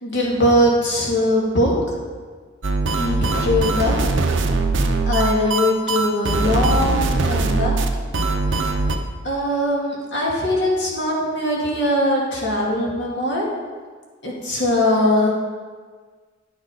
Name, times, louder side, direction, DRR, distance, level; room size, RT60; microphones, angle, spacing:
voice 1, 0.0-1.7 3.0-4.2 5.1-7.8 9.2-13.4 14.2-15.3, left 1 dB, 60° left, -3 dB, 2.3 m, -21 dB
sound 1, 2.6-9.0, right 3 dB, 70° right, 0.7 m, -21 dB
10.5 x 6.4 x 5.0 m, 1.5 s
head